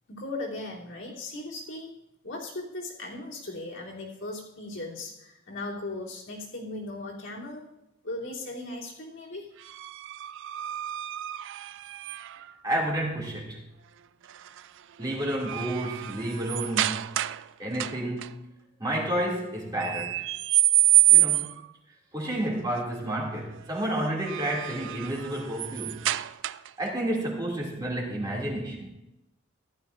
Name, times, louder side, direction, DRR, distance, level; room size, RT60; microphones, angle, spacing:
voice 1, 0.1-2.0 2.2-7.7 8.0-9.5, left 2 dB, 65° left, 3.3 m, -37 dB
sound 1, 9.6-12.5 14.3-14.6 15.0-17.5 17.7-18.3 19.8-21.7 24.0-26.9, right 15 dB, 60° right, 0.3 m, -27 dB
voice 2, 12.6-13.6 15.0-17.0 17.6-18.5 18.8-20.3 21.1-21.6 22.1-26.0 26.8-28.9, right 1 dB, 20° right, 2.5 m, -30 dB
15.0 x 12.0 x 2.6 m
head